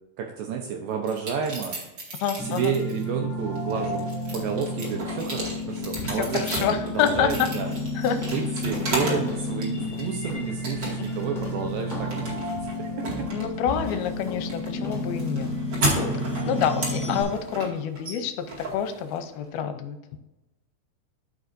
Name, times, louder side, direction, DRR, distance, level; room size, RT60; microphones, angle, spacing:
voice 1, 0.2-1.8 2.5-4.1 4.3-6.4 6.9-7.7 8.3-13.3 16.4-16.8, right 7 dB, 80° right, 3 dB, 2.1 m, -31 dB
sound 1, 1.0-3.0 3.6-9.3 9.6-10.2 10.6-11.2 11.5-19.4, right 2 dB, 40° right, 1.6 m, -33 dB
voice 2, 2.2-2.7 6.0-7.5 8.0-8.2 8.8-9.2 11.4-11.7 13.3-15.5 16.2-18.5 18.7-20.0, left 8 dB, 80° left, 8 dB, 2.4 m, -28 dB
sound 2, 2.4-17.2, left 1 dB, 5° left, 2.0 m, -32 dB
sound 3, 3.4-17.7, left 1 dB, 25° left, 0.9 m, -40 dB
12.5 x 5.4 x 2.6 m, 1.0 s
omnidirectional pair, 4.7 m